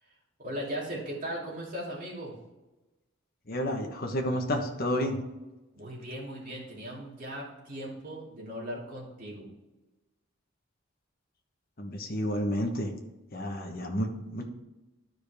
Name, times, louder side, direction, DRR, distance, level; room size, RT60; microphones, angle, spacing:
voice 1, 0.4-2.3 5.7-9.5, equal, 40° right, -4 dB, 2.9 m, -38 dB
voice 2, 3.5-5.2 11.8-12.9 13.3-14.5, equal, 45° left, 2 dB, 1.2 m, -30 dB
12.0 x 5.0 x 3.5 m, 1.1 s
head